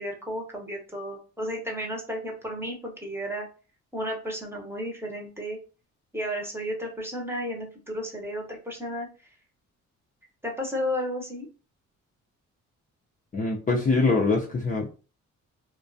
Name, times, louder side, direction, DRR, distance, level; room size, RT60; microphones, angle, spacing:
voice 1, 0.0-3.5 3.9-5.6 6.1-9.1 10.4-11.5, equal, 10° right, 0 dB, 0.8 m, -33 dB
voice 2, 13.3-14.9, left 3 dB, 30° left, -2 dB, 0.5 m, -24 dB
2.3 x 2.2 x 2.5 m, 0.34 s
cardioid pair, 90°, 30 cm